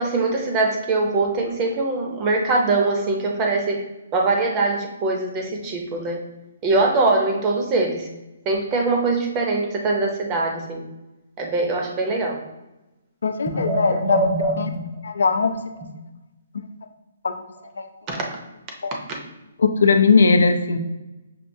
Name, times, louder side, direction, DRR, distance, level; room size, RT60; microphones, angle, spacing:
voice 1, 0.0-3.8 4.1-6.2 6.6-8.1 8.5-10.8 11.4-12.4 13.5-14.8 15.8-15.9 18.1-18.4 19.1-19.2, right 3 dB, 20° right, 1 dB, 0.6 m, -22 dB
voice 2, 13.2-14.2 14.6-14.7 15.0-15.6 17.2-17.3 17.8-17.9 18.8-19.0 19.6-20.8, left 4 dB, 85° left, 7 dB, 0.4 m, -19 dB
5.8 x 2.3 x 2.6 m, 1.0 s
hypercardioid pair, 165°, 0 cm